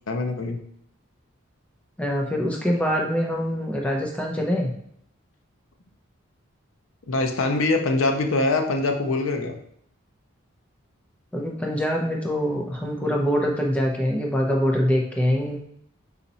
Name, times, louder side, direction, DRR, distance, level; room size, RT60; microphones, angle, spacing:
voice 1, 0.1-0.6 7.1-9.6, left 2 dB, 80° left, 4 dB, 0.6 m, -23 dB
voice 2, 2.0-4.7 11.3-15.6, equal, 5° left, -1 dB, 0.7 m, -24 dB
4.0 x 3.0 x 4.0 m, 0.69 s
head